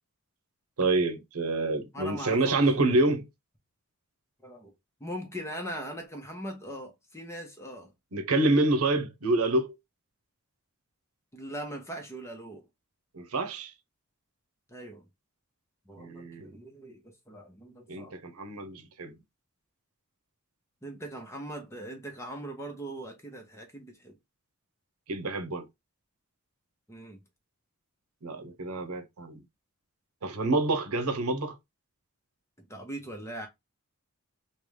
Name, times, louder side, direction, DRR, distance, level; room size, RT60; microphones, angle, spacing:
voice 1, 0.8-3.3 8.1-9.7 13.1-13.7 16.0-16.5 17.9-19.1 25.1-25.7 28.2-29.4 30.2-31.6, right 2 dB, 85° right, 0.8 m, -27 dB
voice 2, 1.9-2.8 4.4-4.7 5.0-7.9 11.3-12.6 14.7-15.0 15.9-18.1 20.8-24.2 26.9-27.2 32.7-33.5, right 1 dB, 10° left, 0.8 m, -40 dB
3.7 x 2.3 x 3.2 m
head